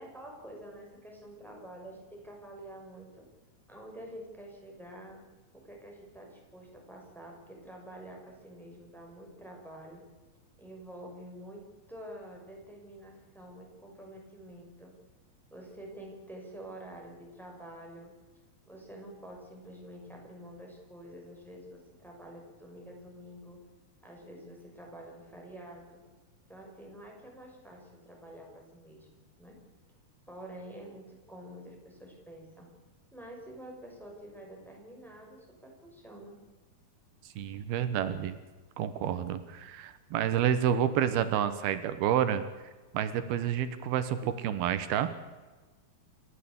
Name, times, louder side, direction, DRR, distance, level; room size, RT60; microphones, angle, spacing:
voice 1, 0.0-3.2 3.7-5.2 5.6-10.0 10.6-11.6 11.9-14.9 15.5-18.1 18.6-23.6 24.0-26.0 26.5-29.1 29.4-29.5 30.3-32.7 33.1-36.3, right 1 dB, ahead, -1 dB, 5.9 m, -48 dB
voice 2, 37.4-38.4 38.8-42.4 42.9-45.1, right 9 dB, 85° right, 11 dB, 3.1 m, -29 dB
28.0 x 14.0 x 8.4 m, 1.3 s
omnidirectional pair, 4.3 m